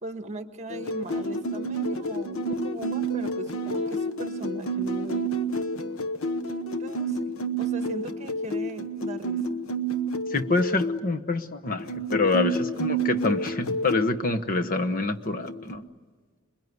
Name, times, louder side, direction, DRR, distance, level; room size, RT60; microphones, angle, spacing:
voice 1, 0.0-5.3 6.8-9.6, right 2 dB, 35° right, 7 dB, 1.6 m, -39 dB
sound 1, 0.7-11.0 11.8-14.1 15.2-15.8, right 2 dB, 75° left, 1.1 m, -29 dB
voice 2, 10.3-15.8, left 3 dB, 45° left, 7 dB, 1.1 m, -26 dB
27.0 x 22.0 x 9.5 m, 1.5 s
head